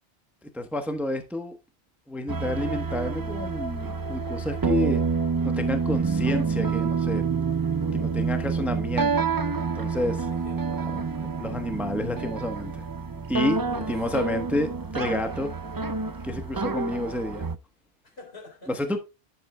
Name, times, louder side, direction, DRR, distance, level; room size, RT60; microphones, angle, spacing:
voice 1, 0.4-1.5 2.1-5.0 5.4-7.2 7.9-9.3 9.7-10.3 10.8-12.9 13.3-15.5 16.2-17.4 18.7-19.0, left 1 dB, ahead, 1.0 m, -30 dB
sound 1, 2.3-17.6, right 5 dB, 35° right, 0.4 m, -28 dB
voice 2, 10.3-10.9 13.6-14.0 18.0-19.0, left 3 dB, 70° left, 3.9 m, -46 dB
10.5 x 7.8 x 2.2 m
omnidirectional pair, 1.1 m